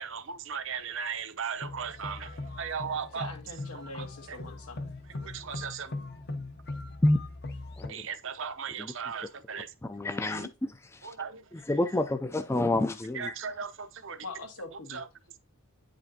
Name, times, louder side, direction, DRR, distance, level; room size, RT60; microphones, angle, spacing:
voice 1, 0.0-3.3 3.7-4.4 5.2-5.9 7.9-9.7 11.0-11.4 13.1-14.2 14.9-15.1, right 6 dB, 60° right, 0.7 m, -37 dB
sound 1, 1.6-7.9, left 2 dB, 50° left, 0.7 m, -40 dB
voice 2, 3.1-4.9 10.3-10.5 14.2-15.0, left 2 dB, 90° left, 2.0 m, -43 dB
voice 3, 9.8-10.5 11.0-11.1 11.5-13.3, left 1 dB, 10° left, 0.3 m, -28 dB
9.4 x 5.1 x 2.8 m
head